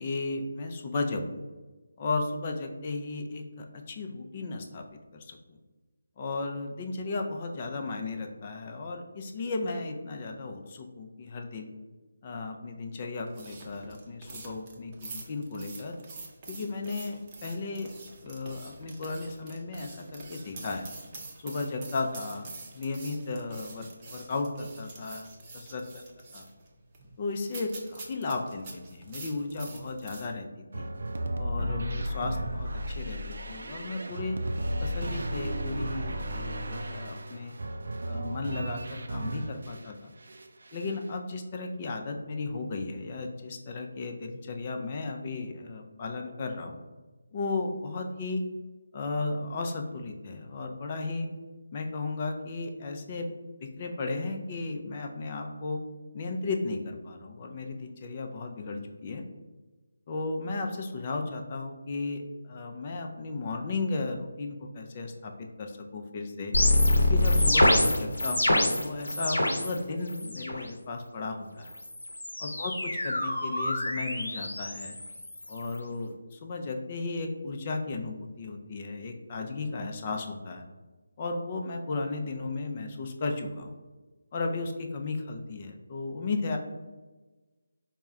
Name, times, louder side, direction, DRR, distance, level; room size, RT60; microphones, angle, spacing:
voice 1, 0.0-1.4 2.0-4.8 5.1-5.6 6.2-11.7 12.2-16.0 16.5-17.9 18.2-20.9 21.4-25.8 26.3-26.5 27.2-30.9 31.4-34.4 34.8-37.5 38.1-40.1 40.7-46.8 47.3-48.4 48.9-51.3 51.7-53.3 53.6-55.8 56.1-59.2 60.1-66.5 67.0-71.7 72.4-75.0 75.5-80.6 81.2-83.8 84.3-86.6, left 3 dB, 30° left, 3 dB, 0.5 m, -35 dB
sound 1, 13.3-30.3, right 3 dB, 25° right, 0.6 m, -46 dB
sound 2, 30.7-39.9 40.2-41.0, right 1 dB, 60° right, 0.4 m, -34 dB
sound 3, 66.5-69.8 70.1-70.6 71.7-75.8, left 1 dB, 80° left, 0.7 m, -26 dB
4.4 x 2.1 x 3.6 m, 1.2 s
figure-of-eight pair, 155°, 0 cm